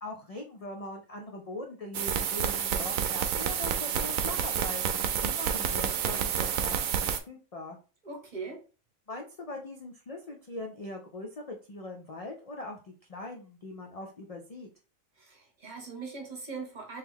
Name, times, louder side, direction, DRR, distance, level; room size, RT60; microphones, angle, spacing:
voice 1, 0.0-4.8 5.2-6.8 7.3-7.8 9.1-14.7, left 2 dB, 70° left, 2 dB, 0.3 m, -41 dB
sound 1, 1.9-7.2, right 8 dB, 90° right, 1.0 m, -29 dB
voice 2, 8.0-8.6 15.2-17.0, right 4 dB, 40° right, 1 dB, 1.0 m, -40 dB
3.2 x 3.0 x 3.6 m, 0.35 s
omnidirectional pair, 1.3 m